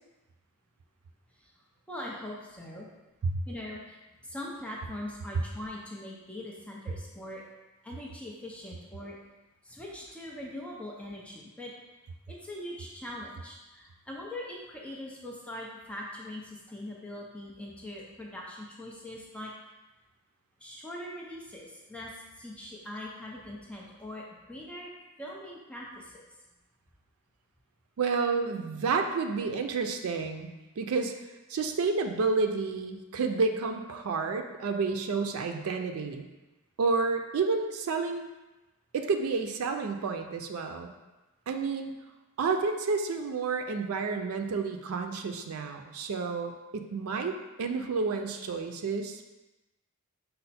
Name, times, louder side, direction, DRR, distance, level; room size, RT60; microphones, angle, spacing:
voice 1, 1.9-2.9 3.5-4.0 4.2-7.4 7.8-9.2 9.6-11.7 12.3-19.5 20.6-24.9 25.2-26.2, left 1 dB, 5° left, -3 dB, 0.5 m, -42 dB
voice 2, 28.0-31.1 31.5-36.3 36.8-38.3 38.9-40.9 41.5-41.9 42.4-49.3, right 4 dB, 90° right, 5 dB, 0.4 m, -30 dB
5.4 x 2.1 x 4.1 m, 1.1 s
head